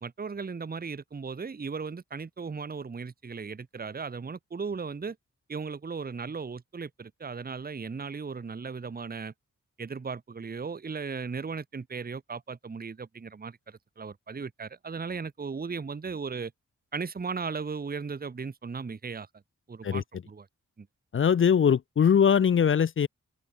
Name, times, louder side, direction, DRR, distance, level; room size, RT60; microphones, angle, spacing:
voice 1, 0.0-5.2 5.5-9.3 9.8-16.5 16.9-19.3 19.7-20.5 20.8-20.9, right 5 dB, 30° right, 0.8 m, -36 dB
voice 2, 21.1-23.1, left 7 dB, 40° left, 0.4 m, -21 dB
open air
cardioid pair, 70°, 32 cm